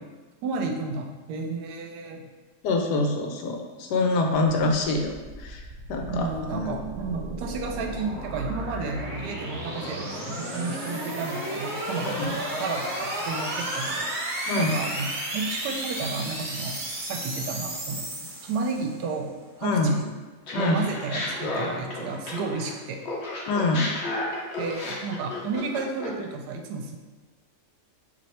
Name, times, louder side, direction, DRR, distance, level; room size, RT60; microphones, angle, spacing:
voice 1, 0.4-2.3 6.1-14.1 14.6-16.7 17.0-18.1 18.4-19.3 19.6-20.0 20.5-23.0 24.6-27.0, right 4 dB, 80° right, 3 dB, 1.1 m, -32 dB
voice 2, 2.6-5.6 5.9-6.8 12.0-12.3 14.5-14.8 19.6-19.9 20.5-20.8 23.5-23.9, left 2 dB, 85° left, 3 dB, 1.2 m, -25 dB
sound 1, 5.1-19.0, right 1 dB, 50° right, 1.1 m, -33 dB
Laughter, 20.5-22.7 23.0-26.2, left 2 dB, 55° left, 0.8 m, -32 dB
3.2 x 2.9 x 4.1 m, 1.3 s
omnidirectional pair, 1.8 m